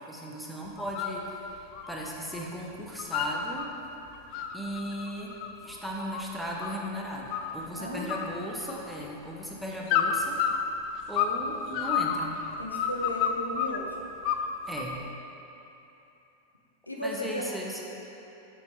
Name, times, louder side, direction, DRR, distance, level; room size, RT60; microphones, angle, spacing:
voice 1, 0.1-3.7 4.5-5.3 5.6-10.4 11.1-12.4 14.7-15.0 17.0-17.8, equal, ahead, -3 dB, 0.9 m, -36 dB
sound 1, 0.8-1.2 1.5-2.5 2.7-3.7 4.1-6.9 7.3-7.8 8.1-9.1 9.9-11.4 11.7-13.8 14.2-15.0, left 8 dB, 45° left, 0.4 m, -30 dB
voice 2, 7.8-8.1 12.6-14.0 16.9-17.4, equal, 85° left, -1 dB, 0.8 m, -35 dB
6.3 x 5.8 x 4.5 m, 2.9 s
figure-of-eight pair, 90°, 0 cm